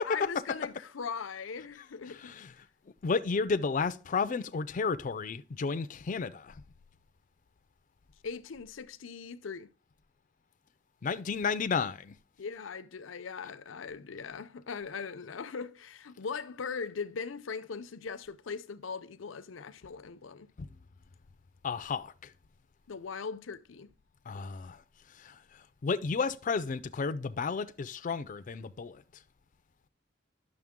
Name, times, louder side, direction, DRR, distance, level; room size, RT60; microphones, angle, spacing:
voice 1, 0.1-2.3 8.2-9.7 12.4-20.5 22.9-23.9, left 5 dB, 90° left, 0.6 m, -40 dB
voice 2, 2.1-2.5 3.0-6.6 11.0-12.1 20.6-20.7 21.6-22.3 24.3-24.8 25.2-25.4 25.8-29.0, left 5 dB, 40° left, 0.4 m, -32 dB
10.5 x 6.5 x 3.6 m
head